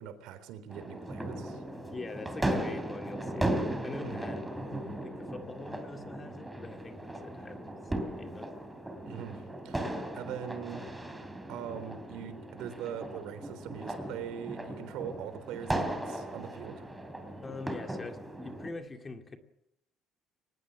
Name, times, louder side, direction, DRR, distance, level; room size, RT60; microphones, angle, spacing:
voice 1, 0.0-1.6 4.0-4.3 9.1-10.9 11.5-16.9, right 9 dB, 80° right, 12 dB, 3.8 m, -42 dB
sound 1, 0.7-18.7, right 1 dB, 5° right, 3.1 m, -37 dB
voice 2, 1.9-3.5 3.8-4.7 5.0-7.7 8.2-8.7 17.4-19.4, left 3 dB, 20° left, 5 dB, 2.3 m, -43 dB
24.0 x 20.5 x 7.2 m, 0.78 s
cardioid pair, 165°, 0 cm